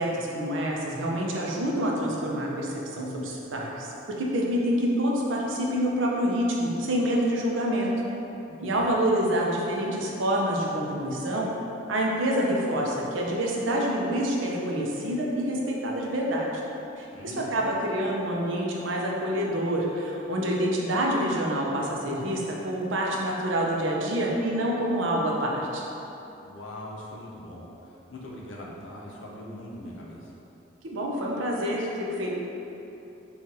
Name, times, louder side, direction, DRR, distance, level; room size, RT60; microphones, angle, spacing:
voice 1, 0.0-3.9 4.2-7.9 8.6-11.5 11.9-16.5 17.0-25.8 30.8-32.3, equal, 90° right, -2 dB, 0.6 m, -27 dB
voice 2, 8.5-8.9 17.1-17.7 26.4-30.3, left 1 dB, 90° left, -4 dB, 0.7 m, -41 dB
5.5 x 2.4 x 2.8 m, 3.0 s
head